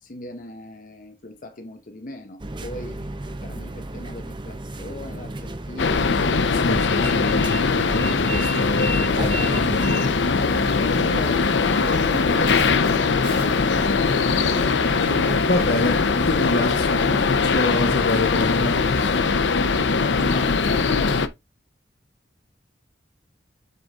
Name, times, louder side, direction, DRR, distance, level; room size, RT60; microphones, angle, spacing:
voice 1, 0.0-6.7 10.8-13.4, left 1 dB, 50° left, 1.0 m, -38 dB
sound 1, 2.4-10.1, right 1 dB, 25° right, 0.6 m, -33 dB
sound 2, 5.8-21.3, left 4 dB, 85° left, 0.7 m, -21 dB
voice 2, 6.5-9.8 15.4-18.8, left 2 dB, 65° left, 1.4 m, -27 dB
sound 3, 9.1-19.2, equal, 50° right, 3.3 m, -35 dB
7.7 x 3.9 x 3.6 m
head